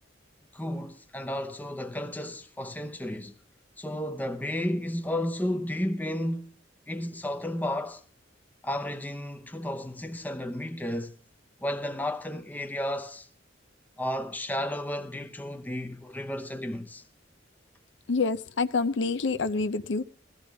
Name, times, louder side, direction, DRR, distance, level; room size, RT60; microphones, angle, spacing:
voice 1, 0.5-3.3 3.8-6.6 6.9-8.0 8.6-11.1 11.6-13.3 14.0-17.0, left 1 dB, 10° left, 0.8 m, -33 dB
voice 2, 18.1-20.0, left 4 dB, 70° left, 0.6 m, -27 dB
16.5 x 13.5 x 3.5 m
head